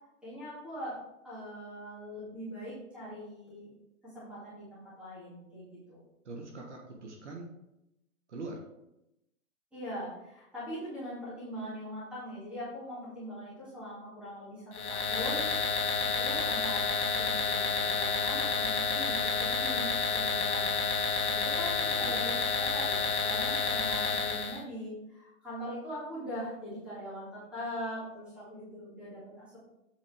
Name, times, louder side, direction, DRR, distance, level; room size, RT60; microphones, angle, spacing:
voice 1, 0.2-1.0 1.2-3.7 4.0-6.0 9.7-15.5 16.2-29.6, equal, ahead, -10 dB, 2.3 m, -41 dB
voice 2, 6.2-7.5 8.3-8.6 21.8-22.6, right 2 dB, 50° right, 1 dB, 1.4 m, -43 dB
sound 1, 14.7-24.6, left 5 dB, 75° left, 1.5 m, -30 dB
7.5 x 4.9 x 4.9 m, 0.88 s
hypercardioid pair, 165°, 44 cm